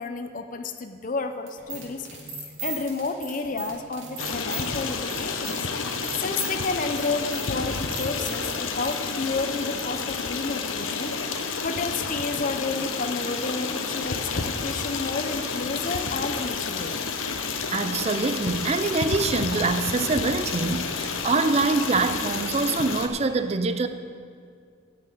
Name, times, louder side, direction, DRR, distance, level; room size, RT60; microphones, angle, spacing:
voice 1, 0.0-2.1 2.6-5.7 6.2-11.1 11.6-16.9, left 3 dB, 40° left, 7 dB, 0.5 m, -31 dB
sound 1, 1.5-9.0, right 3 dB, 85° right, 2.8 m, -37 dB
Stream, 4.2-23.1, left 4 dB, 85° left, 0.9 m, -30 dB
voice 2, 17.7-23.9, right 3 dB, 30° right, 10 dB, 0.4 m, -25 dB
10.0 x 6.7 x 8.8 m, 2.2 s
head